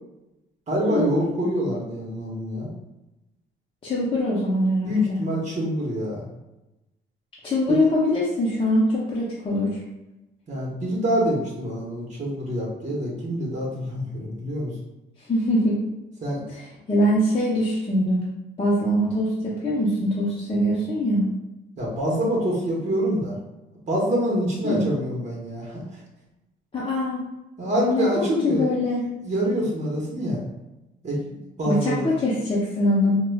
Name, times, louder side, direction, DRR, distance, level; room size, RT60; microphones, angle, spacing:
voice 1, 0.7-2.7 4.8-6.2 7.7-7.8 10.5-14.7 16.2-16.4 21.8-23.4 23.9-25.8 27.6-28.7 29.2-30.4 31.0-31.2 31.6-32.1, equal, 35° right, -3 dB, 1.0 m, -25 dB
voice 2, 3.8-5.2 7.4-9.8 15.3-15.8 16.5-18.2 18.6-21.2 24.6-24.8 26.7-27.2 27.9-29.1 31.7-33.2, left 1 dB, 25° left, -7 dB, 0.7 m, -23 dB
4.6 x 2.2 x 2.2 m, 0.98 s
cardioid pair, 90°, 20 cm